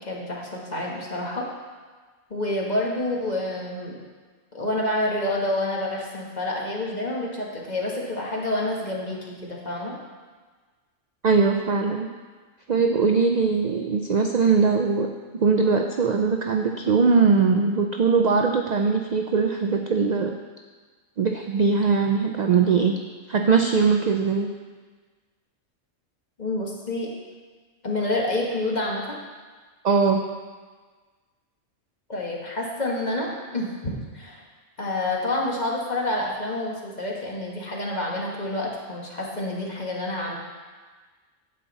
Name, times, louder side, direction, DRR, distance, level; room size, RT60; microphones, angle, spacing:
voice 1, 0.1-1.5 2.3-3.9 4.5-9.9 26.4-27.1 27.8-29.2 32.1-34.4 34.8-40.4, left 1 dB, 35° left, -2 dB, 1.5 m, -28 dB
voice 2, 11.2-12.1 12.7-20.3 21.2-23.0 23.3-24.5 29.8-30.2, right 5 dB, 60° right, 3 dB, 0.4 m, -21 dB
9.5 x 7.6 x 4.0 m, 1.4 s
omnidirectional pair, 1.3 m